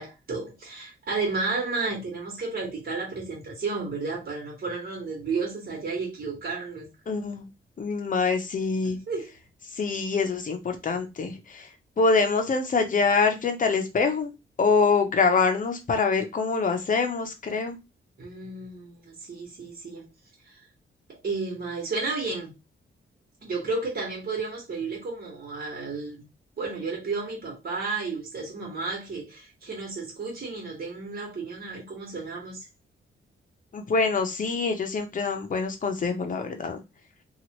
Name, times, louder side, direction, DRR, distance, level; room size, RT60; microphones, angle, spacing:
voice 1, 0.0-6.9 8.8-9.3 18.2-20.1 20.5-20.6 21.1-22.5 23.4-26.3 26.6-32.6, right 4 dB, 45° right, 1.5 m, -32 dB
voice 2, 7.1-7.5 7.8-9.0 9.7-11.7 12.0-17.8 33.7-36.8, left 4 dB, 40° left, 0.7 m, -25 dB
2.9 x 2.4 x 2.9 m
wide cardioid pair, 135°, 21 cm